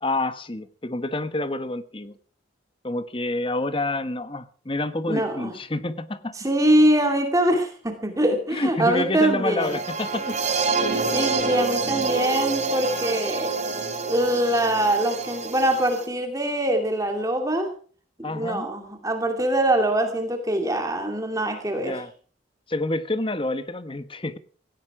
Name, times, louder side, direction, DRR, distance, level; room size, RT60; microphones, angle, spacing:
voice 1, 0.0-2.1 2.8-6.3 8.5-10.4 18.2-18.7 21.8-22.1 22.7-24.4, left 2 dB, 25° left, 13 dB, 1.0 m, -28 dB
voice 2, 5.1-5.5 6.4-9.8 11.1-13.5 14.0-17.7 18.2-22.0, right 1 dB, 15° right, 5 dB, 2.4 m, -23 dB
sound 1, 9.6-16.1, right 4 dB, 35° right, 3.3 m, -27 dB
17.5 x 16.0 x 4.8 m, 0.43 s
head